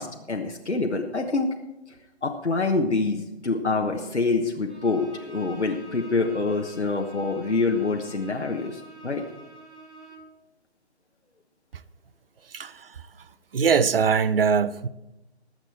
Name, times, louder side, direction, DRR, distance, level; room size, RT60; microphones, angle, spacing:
voice 1, 0.0-1.5 2.2-9.2, left 3 dB, 85° left, 1.3 m, -26 dB
Bowed string instrument, 4.7-10.4, right 3 dB, 90° right, 2.8 m, -46 dB
voice 2, 12.5-12.9 13.5-14.9, right 6 dB, 55° right, 0.7 m, -22 dB
20.0 x 7.8 x 4.4 m
figure-of-eight pair, 135°, 34 cm